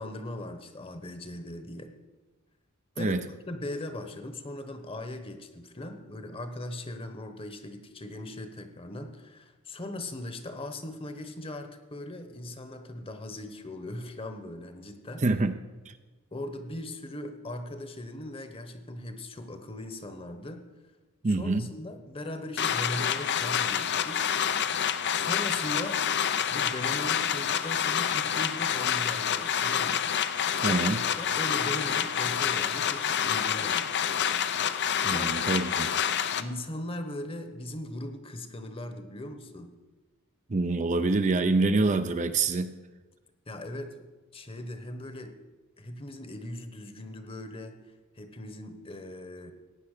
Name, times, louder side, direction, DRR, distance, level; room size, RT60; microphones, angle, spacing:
voice 1, 0.0-1.9 2.9-15.2 16.3-20.7 21.2-24.3 25.1-26.0 26.5-30.0 30.7-34.0 35.1-35.3 36.4-39.8 43.5-44.0 44.3-45.3 45.8-47.8 48.2-49.5, left 1 dB, 25° left, 8 dB, 1.1 m, -39 dB
voice 2, 15.2-15.5 15.9-16.0 21.2-21.7 30.6-31.0 35.0-35.9 40.5-42.7, right 3 dB, 35° right, 9 dB, 0.5 m, -26 dB
sound 1, 22.6-36.4, left 8 dB, 50° left, 0.6 m, -28 dB
15.5 x 9.4 x 6.6 m, 1.2 s
head